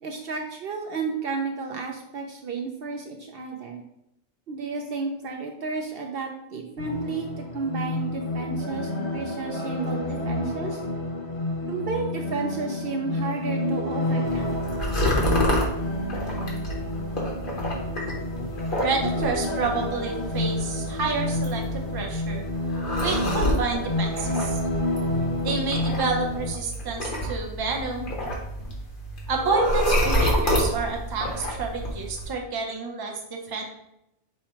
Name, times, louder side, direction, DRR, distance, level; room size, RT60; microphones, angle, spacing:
voice 1, 0.0-3.8 4.5-10.8 11.7-14.6, right 4 dB, 60° right, 2 dB, 0.7 m, -32 dB
sound 1, 6.8-26.5, left 1 dB, 75° left, 1.3 m, -29 dB
sound 2, 14.2-32.3, equal, 50° left, 1.2 m, -29 dB
voice 2, 18.8-22.4 23.0-24.6 25.4-28.1 29.3-33.6, right 4 dB, 25° right, 1 dB, 0.5 m, -29 dB
5.6 x 2.2 x 4.3 m, 0.81 s
omnidirectional pair, 1.2 m